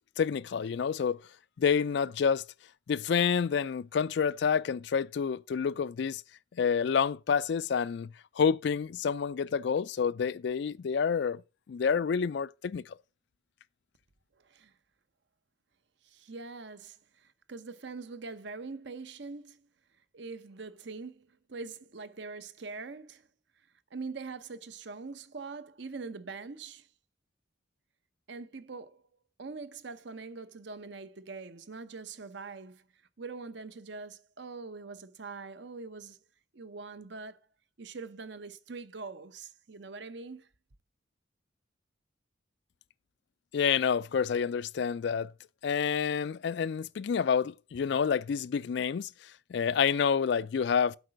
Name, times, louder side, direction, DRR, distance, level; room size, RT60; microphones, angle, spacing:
voice 1, 0.2-1.2 1.6-2.4 2.9-6.2 6.6-8.1 8.4-11.4 11.7-13.0 43.5-45.3 45.6-49.1 49.5-51.0, left 6 dB, 55° left, 0.3 m, -28 dB
voice 2, 16.0-19.7 20.1-23.3 23.9-26.9 28.3-29.0 29.4-32.8 33.2-36.2 36.5-37.4 37.8-40.5, right 4 dB, 60° right, 0.7 m, -43 dB
8.1 x 4.8 x 6.3 m
head